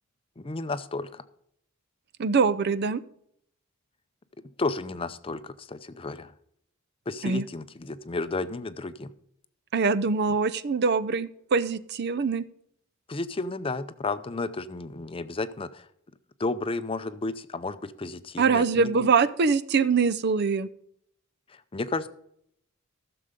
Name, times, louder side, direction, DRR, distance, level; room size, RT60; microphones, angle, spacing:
voice 1, 0.4-1.2 4.6-6.3 7.1-9.1 13.1-15.8 16.4-19.1 21.7-22.1, left 3 dB, 25° left, 12 dB, 0.5 m, -32 dB
voice 2, 2.2-3.0 7.2-7.5 9.7-12.4 18.4-20.7, right 5 dB, 50° right, 16 dB, 0.5 m, -23 dB
15.0 x 6.8 x 5.1 m, 0.71 s
head